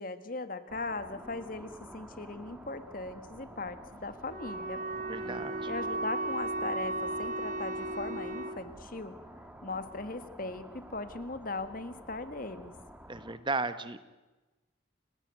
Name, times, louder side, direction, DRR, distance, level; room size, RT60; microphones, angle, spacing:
voice 1, 0.0-4.8 5.7-9.1 9.6-10.6 10.9-12.7, left 3 dB, 45° left, 11 dB, 1.7 m, -39 dB
sound 1, 0.7-13.4, equal, 5° right, 2.2 m, -50 dB
Wind instrument woodwind instrument, 4.2-8.6, right 2 dB, 45° right, 1.7 m, -35 dB
voice 2, 5.1-5.7 13.1-14.0, right 3 dB, 25° right, 12 dB, 1.1 m, -35 dB
Bowed string instrument, 5.2-10.6, right 2 dB, 10° left, 2.2 m, -46 dB
29.5 x 18.0 x 9.5 m, 1.1 s
head